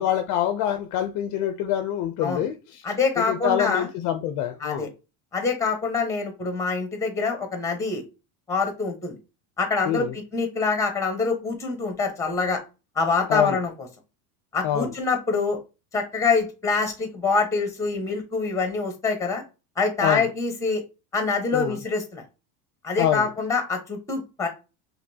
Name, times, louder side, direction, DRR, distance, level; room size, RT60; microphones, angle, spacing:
voice 1, 0.0-2.8 3.2-4.9 9.8-10.1 13.3-13.6 14.6-14.9 20.0-20.3 21.5-21.8 23.0-23.3, left 11 dB, 45° left, 0.5 m, -25 dB
voice 2, 2.8-3.9 4.6-4.9 5.3-8.0 8.5-9.1 9.6-12.6 13.0-13.9 14.5-15.6 15.9-19.4 19.8-20.8 21.1-22.2 22.8-24.5, left 4 dB, 5° left, 0.9 m, -25 dB
5.1 x 3.1 x 2.7 m
supercardioid pair, 150°, 46 cm